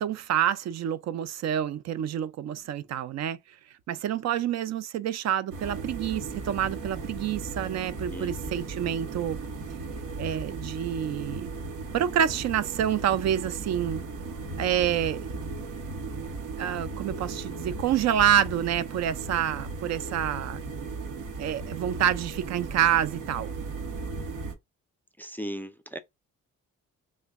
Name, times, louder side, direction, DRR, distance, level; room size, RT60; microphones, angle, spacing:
voice 1, 0.0-3.4 3.9-9.4 10.2-11.5 11.9-14.0 14.6-15.3 16.6-20.6 21.4-23.5, right 10 dB, 60° right, 0.4 m, -27 dB
sound 1, 5.5-24.5, right 3 dB, 80° right, 0.9 m, -36 dB
voice 2, 8.1-8.7 25.2-26.0, equal, 5° left, 0.3 m, -38 dB
3.1 x 2.1 x 3.5 m
cardioid pair, 90°, 30 cm